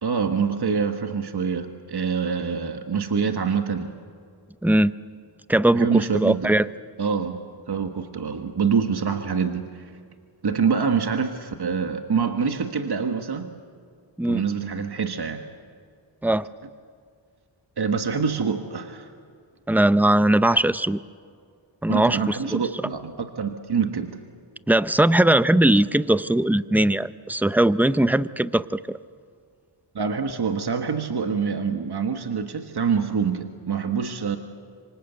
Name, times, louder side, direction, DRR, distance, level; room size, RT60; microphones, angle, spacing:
voice 1, 0.0-3.9 5.7-6.6 7.0-7.4 7.7-9.9 10.4-13.5 14.2-15.4 17.8-19.1 21.9-24.2 29.9-34.4, right 6 dB, 55° right, 6 dB, 1.5 m, -25 dB
voice 2, 4.6-4.9 5.5-6.7 14.2-14.4 16.2-16.5 19.7-21.0 21.8-22.6 24.7-29.0, right 1 dB, 5° right, 14 dB, 0.6 m, -20 dB
26.5 x 25.0 x 8.2 m, 2.2 s
wide cardioid pair, 70°, 46 cm